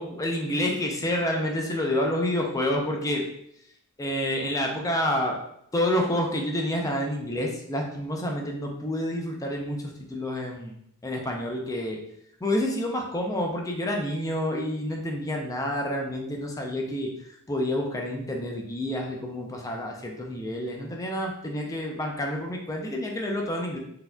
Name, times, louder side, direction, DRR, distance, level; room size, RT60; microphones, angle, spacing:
voice 1, 0.0-3.2 4.0-5.4 5.7-10.7 11.0-12.0 12.4-17.1 17.5-23.8, left 1 dB, 15° left, 1 dB, 0.4 m, -28 dB
4.1 x 2.7 x 2.2 m, 0.75 s
head